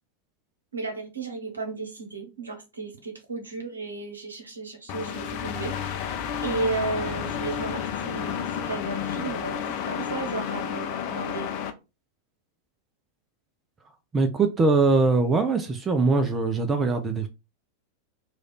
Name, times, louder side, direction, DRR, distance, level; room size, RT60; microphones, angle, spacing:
voice 1, 0.7-6.2 6.4-11.5, right 3 dB, 75° right, 1.0 m, -34 dB
sound 1, 4.9-11.7, left 8 dB, 45° left, 0.5 m, -31 dB
voice 2, 14.1-17.3, right 3 dB, 20° right, 0.5 m, -22 dB
3.2 x 2.4 x 4.0 m
figure-of-eight pair, 90°, 0 cm